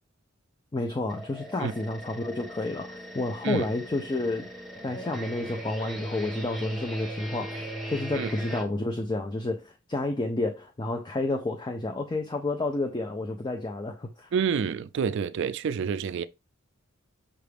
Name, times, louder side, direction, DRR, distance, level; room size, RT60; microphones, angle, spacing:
voice 1, 0.7-4.5 4.8-14.3, left 2 dB, 20° left, 0.5 m, -30 dB
sound 1, 1.1-8.6, right 1 dB, ahead, 0.8 m, -38 dB
voice 2, 14.3-16.2, right 6 dB, 60° right, 0.3 m, -28 dB
5.7 x 2.5 x 3.4 m
head